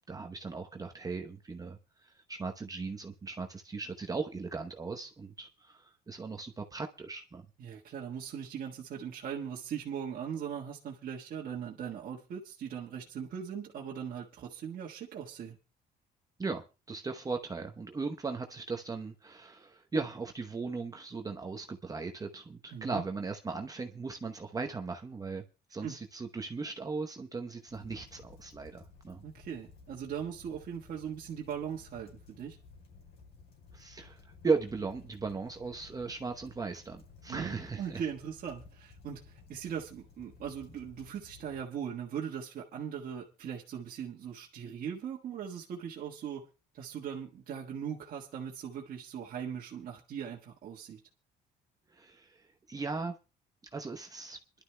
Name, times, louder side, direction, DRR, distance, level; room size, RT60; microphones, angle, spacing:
voice 1, 0.1-7.4 16.4-25.4 25.7-29.2 33.7-38.0 51.9-53.2 53.7-54.4, right 4 dB, 20° right, 4 dB, 0.9 m, -37 dB
voice 2, 7.6-15.6 22.7-23.0 25.8-26.0 29.2-32.6 37.3-46.4 46.7-51.0, right 8 dB, 55° right, -3 dB, 1.5 m, -40 dB
sound 1, 27.7-41.6, left 4 dB, 65° left, 4.5 m, -56 dB
26.5 x 11.5 x 2.2 m, 0.30 s
cardioid pair, 110°, 17 cm